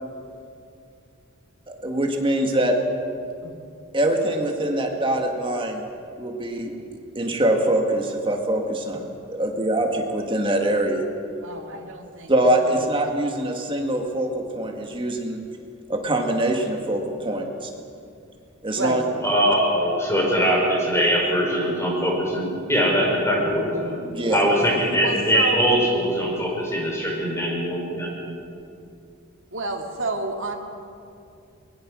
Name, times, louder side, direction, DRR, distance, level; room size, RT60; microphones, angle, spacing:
voice 1, 1.7-2.8 3.9-5.8 6.2-11.0 12.3-15.4 15.9-17.7 18.6-19.0 24.0-24.4, right 1 dB, 25° right, 2 dB, 2.1 m, -24 dB
voice 2, 11.4-12.3 12.9-13.0 18.8-19.0 25.0-25.7 29.5-30.5, right 2 dB, 65° right, 1 dB, 2.4 m, -29 dB
voice 3, 19.2-24.0 24.3-28.1, equal, 15° left, -2 dB, 5.3 m, -22 dB
22.5 x 21.0 x 6.4 m, 2.5 s
head